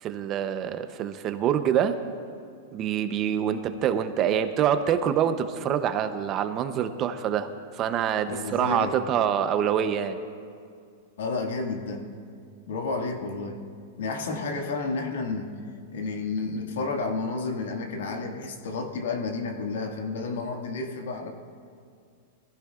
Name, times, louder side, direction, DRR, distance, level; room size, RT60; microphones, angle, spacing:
voice 1, 0.0-1.9 2.7-7.5 7.8-10.2, right 9 dB, 30° right, 9 dB, 0.7 m, -26 dB
voice 2, 8.2-9.0 11.2-12.1 12.7-13.6 14.0-15.5 15.9-21.3, left 3 dB, 85° left, 3 dB, 1.9 m, -31 dB
22.0 x 15.0 x 2.4 m, 2.3 s
supercardioid pair, 155°, 0 cm